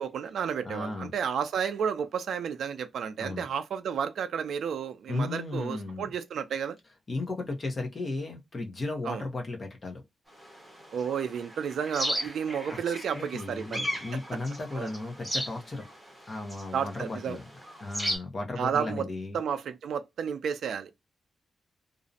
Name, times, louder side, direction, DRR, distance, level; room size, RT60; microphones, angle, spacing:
voice 1, 0.0-6.8 9.0-9.2 10.9-13.9 14.7-14.9 16.7-17.4 18.6-19.1 19.3-20.9, right 7 dB, 75° right, 0.3 m, -32 dB
voice 2, 0.6-1.1 3.2-3.4 5.1-6.0 7.1-10.0 12.7-15.9 16.3-17.4 17.8-19.4, left 2 dB, 30° left, 0.6 m, -35 dB
sound 1, 10.3-18.2, equal, ahead, 0.8 m, -37 dB
2.5 x 2.0 x 2.5 m
wide cardioid pair, 180°, 0 cm